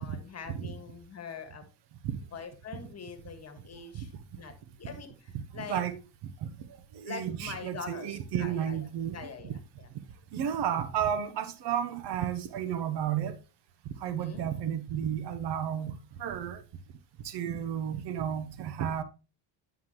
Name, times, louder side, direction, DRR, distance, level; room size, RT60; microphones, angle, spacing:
voice 1, 0.0-1.6 2.3-5.8 7.0-8.8 9.1-9.9 14.0-14.4, left 6 dB, 30° left, 1.7 m, -44 dB
voice 2, 5.5-6.0 6.9-9.2 9.4-9.5 10.3-13.4 14.0-16.6 17.2-19.0, right 9 dB, 55° right, 0.9 m, -32 dB
9.4 x 5.8 x 3.0 m
supercardioid pair, 95°, 48 cm